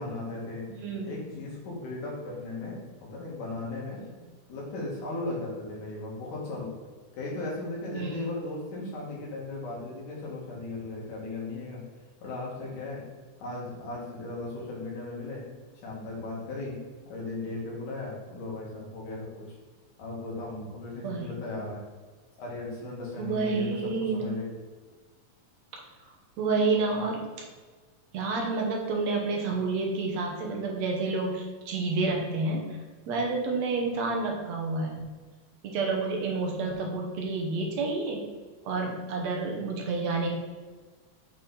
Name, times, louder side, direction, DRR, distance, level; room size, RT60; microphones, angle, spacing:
voice 1, 0.0-0.6 1.0-4.0 4.5-6.7 7.1-11.8 12.2-13.0 13.4-15.4 15.8-16.8 17.1-19.5 20.0-21.8 22.4-24.5, left 2 dB, 85° left, -4 dB, 3.4 m, -36 dB
voice 2, 0.7-1.1 7.9-8.3 21.0-21.3 23.2-24.3 26.4-27.2 28.1-32.7 33.1-35.1 35.6-38.3 38.6-40.3, right 3 dB, 65° right, 0 dB, 2.1 m, -29 dB
7.4 x 4.1 x 4.0 m, 1.4 s
omnidirectional pair, 3.6 m